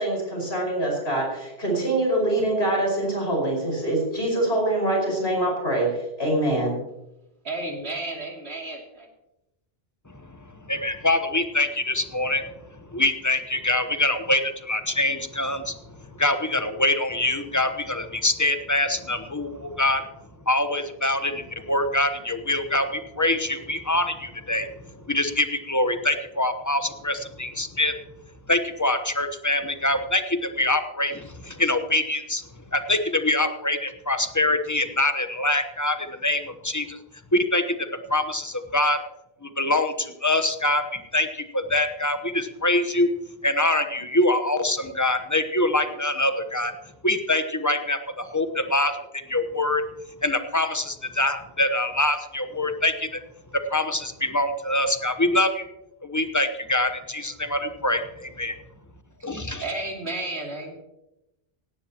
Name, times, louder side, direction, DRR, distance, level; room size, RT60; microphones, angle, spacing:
voice 1, 0.0-6.7, right 1 dB, 75° left, -1 dB, 5.6 m, -24 dB
voice 2, 7.4-8.8 59.6-60.8, right 2 dB, 80° right, 0 dB, 3.1 m, -32 dB
voice 3, 10.1-10.4 10.7-12.4 12.9-15.8 16.2-20.0 20.5-27.9 28.5-32.4 32.7-37.0 37.3-39.0 39.4-43.1 43.4-46.7 47.0-49.8 50.2-53.2 53.5-55.7 56.0-58.0 58.4-58.6 59.2-59.6, left 1 dB, 20° left, 8 dB, 1.0 m, -24 dB
17.5 x 17.0 x 2.9 m, 0.92 s
omnidirectional pair, 1.1 m